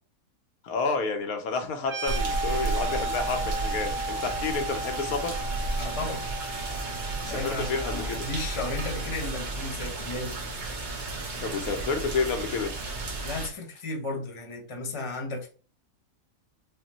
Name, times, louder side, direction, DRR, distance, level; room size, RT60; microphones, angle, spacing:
voice 1, 0.6-5.4 7.2-8.0 11.4-12.7, left 4 dB, 85° left, 5 dB, 1.2 m, -30 dB
sound 1, 1.8-9.3, right 2 dB, 65° right, 1.7 m, -35 dB
sound 2, 2.1-13.5, right 3 dB, 40° right, 0.8 m, -33 dB
voice 2, 5.8-6.3 7.3-10.4 13.2-15.5, left 2 dB, 25° left, 1 dB, 0.8 m, -34 dB
5.0 x 2.2 x 2.8 m, 0.39 s
omnidirectional pair, 1.5 m